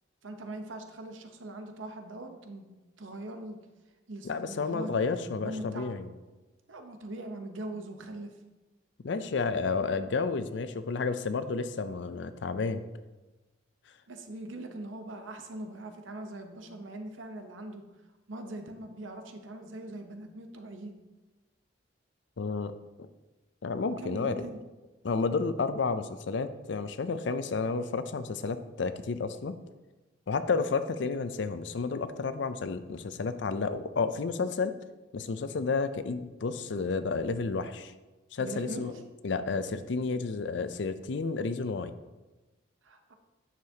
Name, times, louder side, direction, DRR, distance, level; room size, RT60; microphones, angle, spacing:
voice 1, 0.2-2.7 3.0-3.6 4.1-4.9 5.4-5.9 6.7-8.3 14.1-17.8 18.3-20.9 24.0-24.6 38.4-38.9 42.8-43.1, right 1 dB, 80° right, 5 dB, 0.9 m, -41 dB
voice 2, 4.2-6.1 9.0-12.8 22.4-22.7 23.0-23.1 23.6-24.4 25.0-29.5 30.3-34.7 35.1-37.9 38.3-38.9 39.2-41.9, left 4 dB, 65° left, 11 dB, 0.5 m, -31 dB
9.4 x 6.7 x 2.8 m, 1.1 s
head